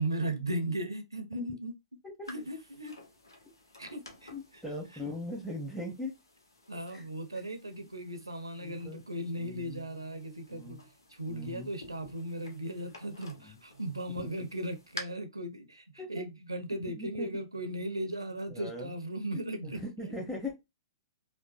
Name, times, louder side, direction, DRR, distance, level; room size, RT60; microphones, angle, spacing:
voice 1, 0.0-1.7 2.3-2.9 3.8-4.6 6.7-19.8, right 1 dB, 90° right, 0.8 m, -37 dB
sound 1, 2.2-15.0, left 2 dB, 80° left, 1.1 m, -52 dB
voice 2, 4.3-6.1 6.9-7.0 8.6-9.0 9.4-9.8 10.5-10.8 11.3-11.7 13.4-13.6 16.0-16.2 16.9-17.3 18.5-18.9 19.3-19.4 19.8-20.6, left 1 dB, ahead, 1.3 m, -40 dB
5.0 x 2.5 x 2.5 m
figure-of-eight pair, 110°, 2 cm